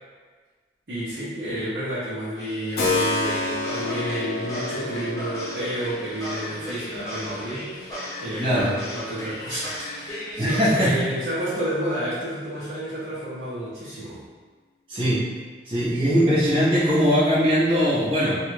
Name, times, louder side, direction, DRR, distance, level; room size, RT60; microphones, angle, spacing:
voice 1, 0.9-14.2, right 1 dB, 60° right, -11 dB, 0.7 m, -31 dB
sound 1, 2.4-10.8, equal, 20° left, 0.8 m, -35 dB
Keyboard (musical), 2.8-11.4, left 2 dB, 55° left, 0.6 m, -32 dB
voice 2, 8.4-8.7 10.4-10.9 14.9-15.3 15.7-18.4, equal, 30° right, -11 dB, 0.9 m, -20 dB
3.0 x 2.2 x 3.2 m, 1.4 s
head